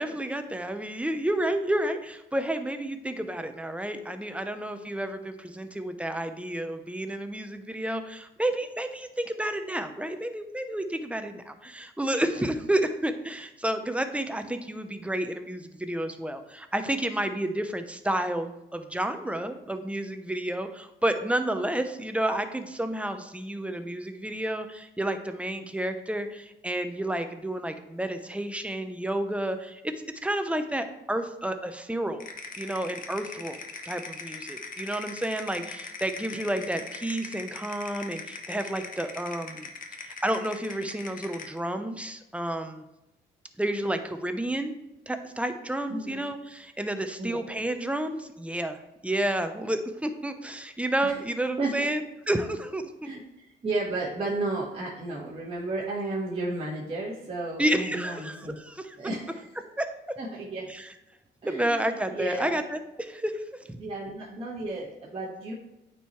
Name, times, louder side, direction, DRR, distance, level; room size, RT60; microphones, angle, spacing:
voice 1, 0.0-29.9 30.2-32.2 32.6-33.6 33.8-39.7 40.0-42.8 43.6-44.7 45.1-53.1 57.6-59.0 59.8-59.9 60.7-60.9 61.4-62.8 63.1-63.8, right 1 dB, 5° right, 8 dB, 0.6 m, -30 dB
sound 1, 32.2-41.6, left 4 dB, 45° left, 0.8 m, -41 dB
voice 2, 45.9-46.2 47.2-47.4 51.0-51.2 51.6-51.9 53.0-58.6 59.0-59.5 60.2-60.7 61.4-62.6 63.8-65.5, right 2 dB, 30° right, -7 dB, 1.6 m, -33 dB
8.9 x 4.6 x 3.1 m, 0.92 s
cardioid pair, 90°, 20 cm